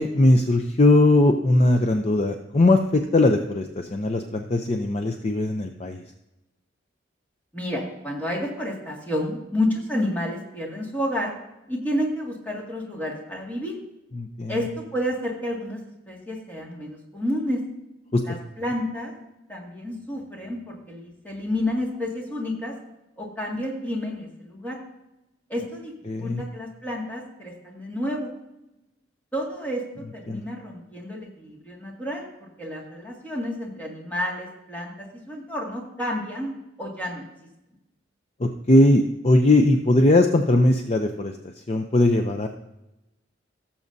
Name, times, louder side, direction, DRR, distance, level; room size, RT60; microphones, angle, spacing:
voice 1, 0.0-6.0 14.2-14.6 18.1-18.2 26.1-26.4 30.3-30.4 38.4-41.3 41.7-42.5, left 1 dB, 35° left, 5 dB, 0.5 m, -20 dB
voice 2, 7.5-11.3 11.7-13.7 14.5-14.7 14.9-15.8 16.1-17.6 18.2-19.1 19.5-22.7 23.2-24.8 25.5-25.9 26.2-28.3 29.3-36.5 36.8-37.2, left 1 dB, 10° left, -2 dB, 2.0 m, -30 dB
17.5 x 7.2 x 2.7 m, 0.94 s
head